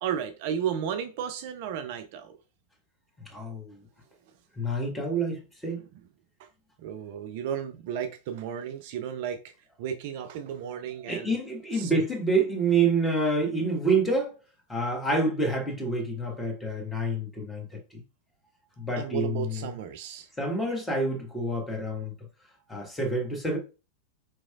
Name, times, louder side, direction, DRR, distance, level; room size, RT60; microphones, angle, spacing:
voice 1, 0.0-2.4 6.4-6.5 6.8-9.5 9.8-11.4 11.7-11.9 19.0-20.3, right 9 dB, 50° right, 0.3 m, -33 dB
voice 2, 3.2-3.8 4.6-5.8 11.1-14.4 14.7-17.8 18.8-19.6 20.4-22.1 22.7-23.6, right 2 dB, 10° left, 1.3 m, -27 dB
4.5 x 2.9 x 2.4 m
figure-of-eight pair, 90°, 0 cm